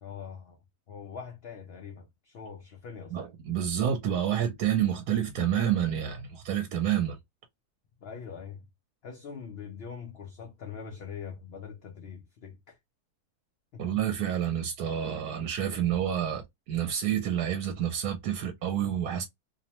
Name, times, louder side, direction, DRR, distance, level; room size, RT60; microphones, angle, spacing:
voice 1, 0.0-0.6 0.9-3.2 8.0-8.6 9.0-12.8 13.7-13.8, left 6 dB, 70° left, 0.5 m, -43 dB
voice 2, 3.1-7.2 13.8-16.4 16.7-19.2, right 9 dB, 85° right, 1.1 m, -28 dB
2.7 x 2.1 x 2.8 m
omnidirectional pair, 1.6 m